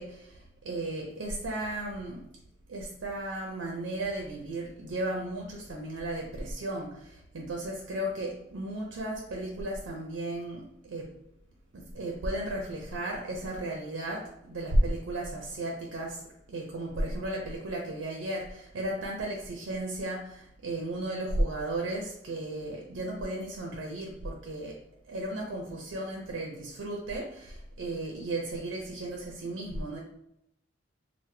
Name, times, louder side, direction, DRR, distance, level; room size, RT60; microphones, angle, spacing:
voice 1, 0.0-2.2 2.7-11.1 11.7-16.2 16.5-24.8 25.1-30.0, right 1 dB, 85° right, -1 dB, 0.5 m, -34 dB
3.2 x 2.0 x 3.1 m, 0.78 s
head